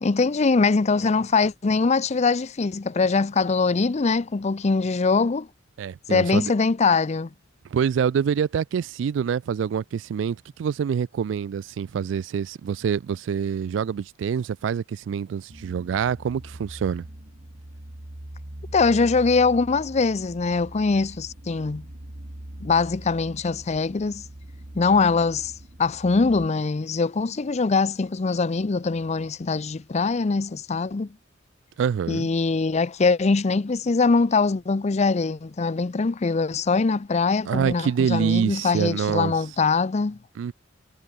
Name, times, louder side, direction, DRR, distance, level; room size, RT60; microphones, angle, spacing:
voice 1, 0.0-5.5 6.1-7.3 18.7-21.8 22.6-24.2 24.7-25.5 25.8-31.1 32.1-40.2, left 4 dB, 35° left, 0.5 m, -22 dB
voice 2, 5.8-6.5 7.7-17.0 31.8-32.3 37.5-39.3 40.4-40.5, right 7 dB, 70° right, 0.3 m, -26 dB
sound 1, 15.5-26.5, right 1 dB, 45° right, 2.0 m, -42 dB
head